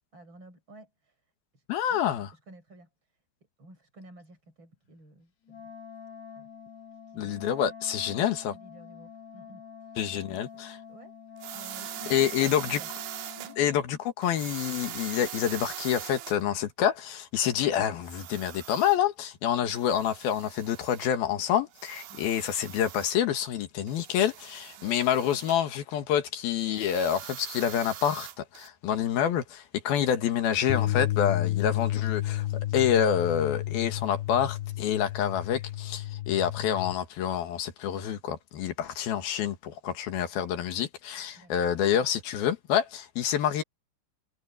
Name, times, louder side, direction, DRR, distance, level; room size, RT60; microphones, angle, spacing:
voice 1, 0.1-1.2 1.5-3.2 3.6-5.7 6.4-6.5 6.9-7.3 8.1-10.0 10.3-10.4 10.9-11.1 11.5-12.9 13.4-13.6 22.1-22.3 24.8-25.0 41.4-41.8, right 1 dB, 30° right, 7.0 m, -52 dB
voice 2, 1.7-2.3 7.2-8.5 10.0-10.8 12.1-12.8 13.6-43.6, left 9 dB, 70° left, 3.4 m, -27 dB
Wind instrument woodwind instrument, 5.4-13.9, left 7 dB, 45° left, 3.5 m, -47 dB
sound 1, 11.4-13.5 14.2-16.4 18.0-19.0 19.8-21.1 21.7-23.2 23.9-25.6 26.7-28.7, right 13 dB, 70° right, 3.0 m, -42 dB
Bass guitar, 30.7-36.9, left 14 dB, 90° left, 2.7 m, -31 dB
omnidirectional pair, 4.7 m